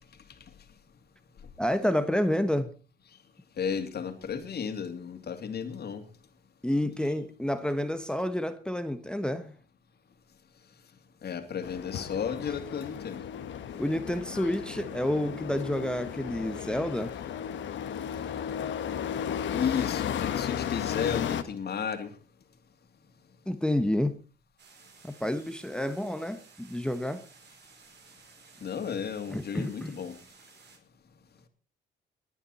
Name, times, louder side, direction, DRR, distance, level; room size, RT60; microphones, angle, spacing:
voice 1, 1.6-2.7 6.6-9.5 13.8-17.1 23.5-24.1 25.0-27.2 29.3-29.9, left 1 dB, 5° left, 10 dB, 1.2 m, -29 dB
voice 2, 3.6-6.0 11.2-13.2 19.5-22.1 28.6-30.1, left 7 dB, 55° left, 7 dB, 2.7 m, -33 dB
sound 1, 11.6-21.4, left 9 dB, 70° left, 1.3 m, -34 dB
sound 2, 24.6-30.8, right 5 dB, 60° right, 4.5 m, -56 dB
20.5 x 10.0 x 4.3 m, 0.36 s
cardioid pair, 90°, 20 cm